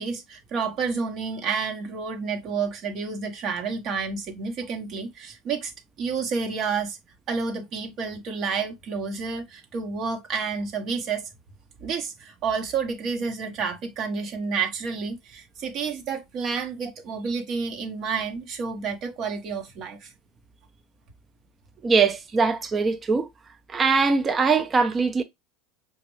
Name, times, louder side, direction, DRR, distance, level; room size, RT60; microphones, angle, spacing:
voice 1, 0.0-5.7 6.0-7.0 7.3-11.3 11.8-20.1, right 5 dB, 50° right, 1.0 m, -30 dB
voice 2, 21.8-23.3 23.7-25.2, right 4 dB, 30° right, 0.5 m, -22 dB
5.1 x 2.3 x 3.1 m
hypercardioid pair, 90°, 0 cm